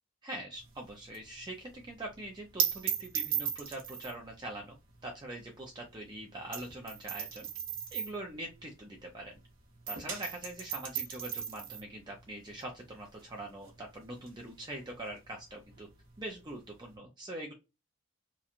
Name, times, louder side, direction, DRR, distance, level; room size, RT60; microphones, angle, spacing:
voice 1, 0.2-4.7 5.0-7.5 7.9-9.4 9.9-15.9 16.2-17.5, right 1 dB, 20° right, 0 dB, 0.5 m, -43 dB
sound 1, 0.6-9.4 9.7-16.9, right 8 dB, 90° right, 0.8 m, -38 dB
2.9 x 2.2 x 2.4 m, 0.25 s
head